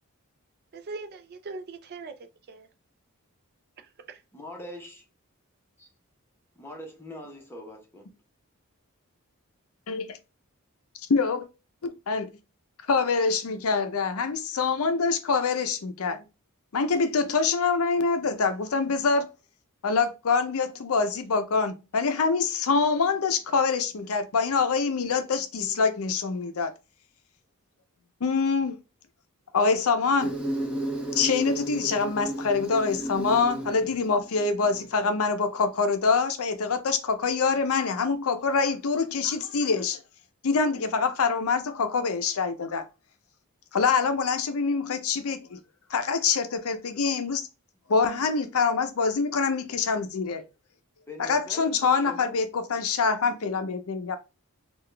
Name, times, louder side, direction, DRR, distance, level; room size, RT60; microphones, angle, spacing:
voice 1, 0.7-2.7 4.1-4.2, right 3 dB, 45° right, 0.4 m, -40 dB
voice 2, 4.3-5.0 6.5-8.1 51.1-52.3, left 1 dB, 10° left, 1.0 m, -42 dB
voice 3, 9.9-10.2 11.1-11.5 11.8-12.3 12.9-16.2 16.7-19.3 19.8-26.7 28.2-28.7 29.5-30.3 31.1-40.0 40.4-42.8 43.7-45.6 45.9-47.5 47.9-50.4 51.2-54.2, left 4 dB, 70° left, 0.6 m, -25 dB
Insect, 30.2-35.2, right 1 dB, 5° right, 0.8 m, -33 dB
3.8 x 2.4 x 3.3 m
head